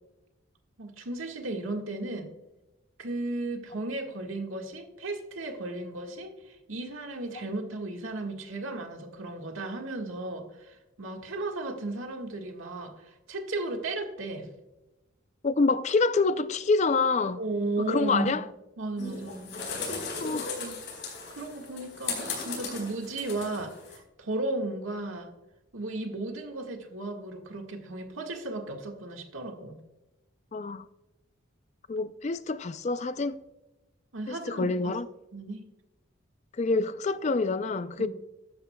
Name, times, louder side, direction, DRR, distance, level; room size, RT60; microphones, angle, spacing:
voice 1, 0.8-2.3 3.0-14.5 17.4-18.4 18.8-19.5 20.3-20.8 21.3-25.3 25.7-29.8 34.1-35.0 35.3-35.6 38.0-38.1, right 2 dB, 80° right, 1.6 m, -35 dB
voice 2, 15.4-17.4 17.9-18.4 20.2-20.5 30.5-30.9 31.9-33.4 34.3-35.1 36.6-38.1, left 3 dB, 35° left, 0.3 m, -27 dB
sound 1, 19.0-24.0, left 4 dB, 55° left, 4.2 m, -37 dB
14.0 x 11.0 x 2.2 m
head